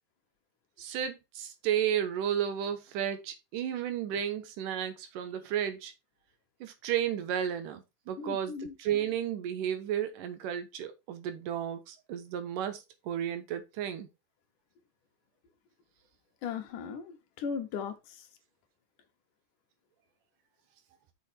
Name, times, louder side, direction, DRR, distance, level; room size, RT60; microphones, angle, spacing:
voice 1, 0.8-5.9 6.6-8.5 8.8-14.1, right 9 dB, 75° right, 2.7 m, -33 dB
voice 2, 8.2-8.8 16.4-18.3, left 6 dB, 70° left, 2.6 m, -37 dB
6.6 x 6.0 x 4.4 m
omnidirectional pair, 3.9 m